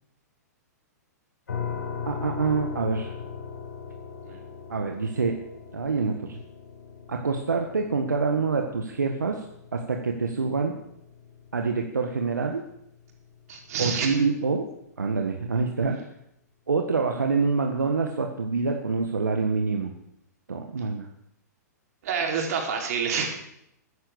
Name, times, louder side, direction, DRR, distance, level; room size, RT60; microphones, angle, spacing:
sound 1, 1.5-14.3, left 6 dB, 80° left, 5.3 m, -40 dB
voice 1, 2.0-3.1 4.7-5.4 5.7-6.4 7.1-9.4 9.7-10.8 11.5-12.6 13.8-14.7 15.0-16.0 16.7-19.9 20.5-21.1, right 4 dB, 90° right, 3 dB, 1.6 m, -26 dB
voice 2, 13.5-14.1 22.0-23.3, right 6 dB, 60° right, 1 dB, 4.7 m, -28 dB
15.0 x 9.8 x 7.0 m, 0.77 s
hypercardioid pair, 120°, 9 cm